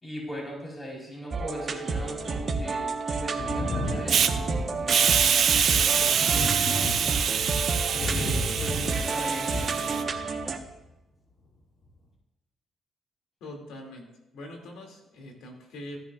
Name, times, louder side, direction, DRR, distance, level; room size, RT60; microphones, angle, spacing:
voice 1, 0.0-7.2 7.5-10.1, equal, 20° left, -3 dB, 4.2 m, -40 dB
sound 1, 1.3-10.6, right 4 dB, 40° right, 1.1 m, -30 dB
Thunder, 3.4-10.7 11.8-11.9, left 2 dB, 60° left, 3.3 m, -35 dB
Hiss, 4.1-4.3 4.9-10.0, right 8 dB, 60° right, 0.7 m, -25 dB
voice 2, 13.4-16.0, left 1 dB, 85° left, 0 dB, 2.5 m, -43 dB
15.5 x 10.5 x 2.4 m, 0.99 s
cardioid pair, 90°, 0 cm